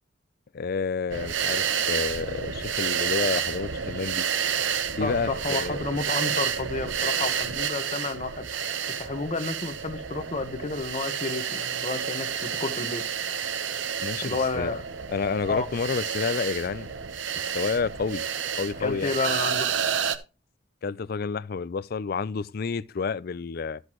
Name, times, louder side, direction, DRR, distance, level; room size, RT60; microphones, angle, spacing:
voice 1, 0.5-4.3 4.9-5.8 14.0-14.7 15.1-16.9 17.4-18.2 18.5-19.1 20.8-23.8, left 5 dB, 50° left, 0.4 m, -29 dB
sound 1, 1.1-20.2, right 7 dB, 70° right, 0.9 m, -30 dB
voice 2, 5.0-13.1 14.2-14.8 15.5-15.7 18.8-19.7, left 3 dB, 35° left, 1.1 m, -31 dB
12.5 x 8.0 x 3.0 m
head